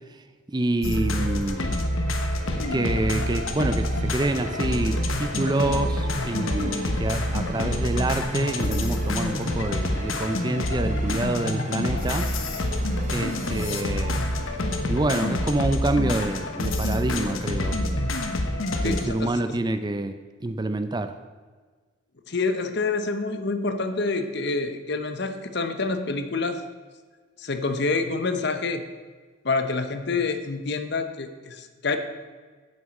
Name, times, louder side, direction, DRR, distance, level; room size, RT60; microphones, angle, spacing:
voice 1, 0.5-1.6 2.6-12.3 13.1-14.3 14.9-18.1 18.8-21.1, right 2 dB, 20° right, 9 dB, 0.4 m, -27 dB
sound 1, 0.8-19.0, left 1 dB, 80° left, 1.1 m, -27 dB
sound 2, 0.8-18.6, right 2 dB, 35° right, 0.8 m, -40 dB
voice 2, 18.8-19.7 22.3-26.6 27.4-28.8 29.4-32.0, left 3 dB, 55° left, 8 dB, 0.9 m, -27 dB
8.9 x 7.4 x 6.4 m, 1.4 s
head